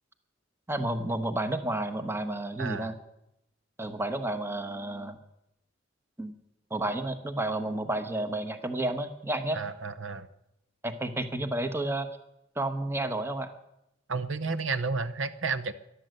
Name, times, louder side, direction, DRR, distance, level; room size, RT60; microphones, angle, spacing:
voice 1, 0.7-3.0 3.8-5.1 6.2-6.3 6.7-9.6 10.8-12.1 12.6-13.5, right 1 dB, 15° right, 8 dB, 1.1 m, -31 dB
voice 2, 2.6-2.9 9.5-10.3 14.1-15.7, right 4 dB, 75° right, 13 dB, 0.8 m, -31 dB
13.0 x 12.0 x 7.7 m, 0.85 s
head